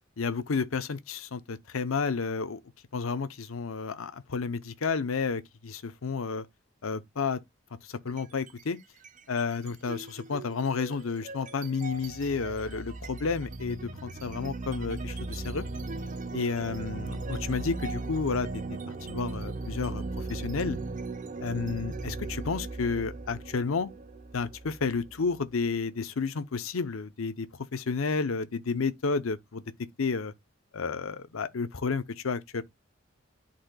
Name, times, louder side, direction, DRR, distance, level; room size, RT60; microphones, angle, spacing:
voice 1, 0.2-2.6 2.9-6.5 6.8-7.4 7.8-8.8 9.3-15.6 16.3-18.6 19.1-20.0 20.3-20.8 21.4-23.9 24.3-27.5 27.7-30.3 30.7-32.6, left 4 dB, 90° left, 0.7 m, -31 dB
sound 1, 8.1-8.6 9.0-25.6, right 3 dB, 40° right, 0.6 m, -38 dB
10.5 x 4.3 x 2.2 m
head